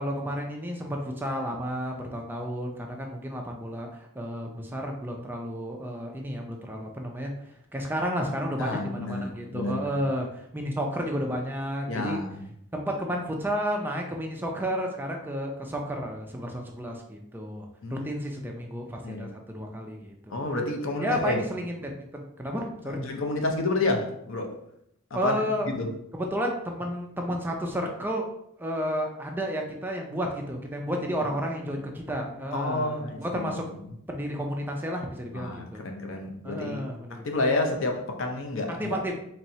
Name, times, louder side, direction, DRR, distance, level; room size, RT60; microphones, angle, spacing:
voice 1, 0.0-7.3 7.7-12.2 12.7-20.4 21.0-23.0 25.1-25.7 26.1-28.3 28.6-33.6 34.1-35.8 36.4-37.3 38.7-39.1, equal, 10° right, 1 dB, 0.5 m, -32 dB
voice 2, 8.6-10.0 11.9-12.4 17.8-18.6 19.0-19.3 20.3-21.5 22.8-24.6 25.1-25.4 25.7-25.9 31.2-31.3 31.7-31.8 32.5-33.5 35.3-39.0, left 2 dB, 65° left, 3 dB, 0.6 m, -30 dB
4.2 x 3.1 x 2.7 m, 0.76 s
head